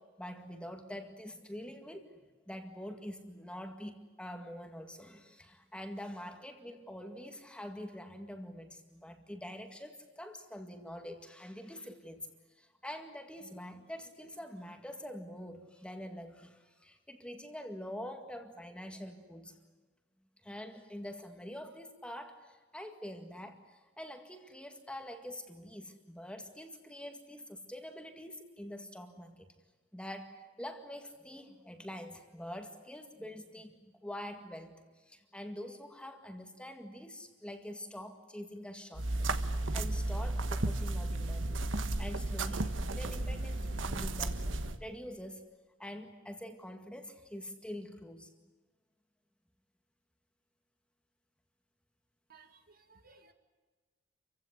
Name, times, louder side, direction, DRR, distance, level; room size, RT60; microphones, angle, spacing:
voice 1, 0.0-12.3 12.6-19.7 20.4-29.5 29.9-34.8 35.0-39.1 39.7-41.6 42.0-45.4 45.8-48.3, equal, 5° left, 5 dB, 2.0 m, -45 dB
sound 1, 38.9-44.8, right 2 dB, 85° right, 1.4 m, -33 dB
voice 2, 52.3-53.3, right 4 dB, 50° right, 6 dB, 2.0 m, -60 dB
28.0 x 16.0 x 9.8 m, 1.3 s
head